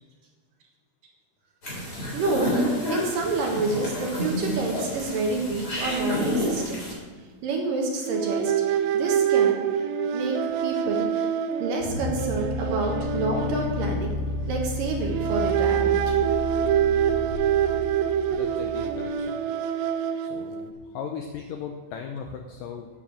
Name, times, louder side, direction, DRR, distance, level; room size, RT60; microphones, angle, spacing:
sound 1, 1.6-6.9, left 1 dB, 25° left, 3.7 m, -29 dB
voice 1, 2.1-6.9 7.4-9.6 10.1-10.4 10.6-11.3 11.6-14.2 14.5-16.1, right 3 dB, 60° right, 0 dB, 2.7 m, -28 dB
sound 2, 5.8-6.0 6.3-6.5 8.0-14.7 15.1-20.7, right 9 dB, 85° right, 3.0 m, -26 dB
sound 3, 11.8-19.0, left 2 dB, 55° left, 1.5 m, -32 dB
voice 2, 18.3-19.5 20.2-22.9, left 7 dB, 85° left, 3 dB, 1.9 m, -38 dB
9.1 x 8.2 x 7.5 m, 1.4 s
omnidirectional pair, 5.0 m